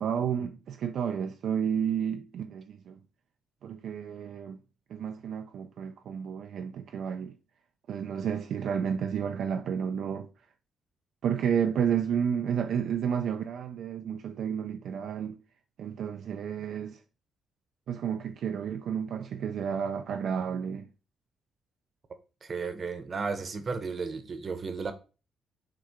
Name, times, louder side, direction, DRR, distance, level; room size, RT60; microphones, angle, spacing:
voice 1, 0.0-3.0 3.6-4.6 4.9-7.4 7.9-10.3 11.2-15.4 15.8-17.0 17.9-20.9, right 8 dB, 70° right, 0.3 m, -31 dB
voice 2, 22.4-24.9, right 4 dB, 40° right, 0.8 m, -34 dB
6.4 x 2.3 x 3.5 m
cardioid pair, 90°, 0 cm